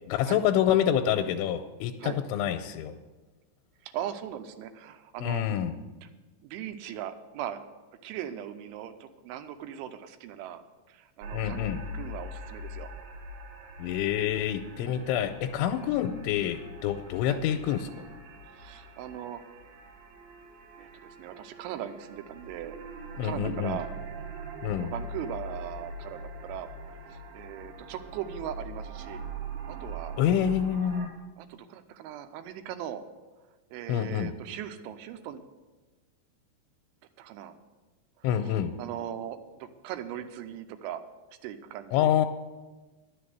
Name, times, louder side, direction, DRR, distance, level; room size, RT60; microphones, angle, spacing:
voice 1, 0.1-2.9 5.2-5.7 11.3-11.8 13.8-17.9 23.2-23.8 24.6-24.9 30.2-31.1 33.9-34.3 38.2-38.7 41.9-42.3, left 10 dB, 85° left, 7 dB, 3.0 m, -27 dB
voice 2, 3.8-5.5 6.0-6.1 6.4-7.6 8.0-10.6 10.9-11.7 11.9-12.9 14.8-15.1 17.3-17.4 18.5-19.4 20.8-23.9 24.2-24.3 24.8-29.2 29.7-30.2 31.4-33.0 33.7-35.4 37.2-37.6 38.2-41.0 41.4-42.3, right 10 dB, 90° right, 9 dB, 3.2 m, -39 dB
sound 1, 11.2-31.1, right 1 dB, 60° right, 2.9 m, -42 dB
11.0 x 6.9 x 9.3 m, 1.2 s
omnidirectional pair, 5.3 m